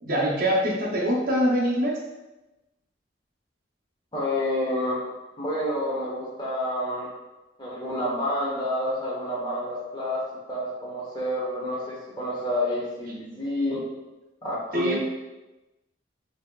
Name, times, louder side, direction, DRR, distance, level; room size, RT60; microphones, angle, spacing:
voice 1, 0.0-2.0 14.7-15.0, equal, 50° right, -3 dB, 0.6 m, -24 dB
voice 2, 4.1-5.0 5.4-7.1 7.6-10.2 10.5-13.8 14.4-15.0, left 1 dB, 25° left, -6 dB, 1.0 m, -29 dB
4.2 x 2.7 x 2.3 m, 1.1 s
head